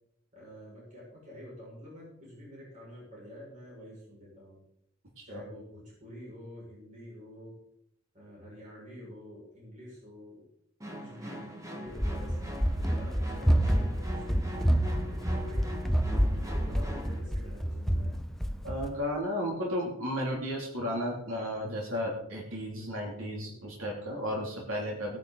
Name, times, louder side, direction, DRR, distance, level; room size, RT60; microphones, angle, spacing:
voice 1, 0.3-4.6 5.2-7.6 8.1-10.5 11.0-12.4 12.9-14.8 15.1-15.7 16.1-18.1, equal, 40° right, -6 dB, 6.3 m, -48 dB
sound 1, 10.8-17.2, equal, 15° right, 1.8 m, -42 dB
Run, 11.9-19.0, equal, ahead, 0.6 m, -28 dB
voice 2, 18.6-25.2, equal, 85° right, -2 dB, 3.0 m, -34 dB
18.0 x 9.5 x 4.1 m, 0.78 s
head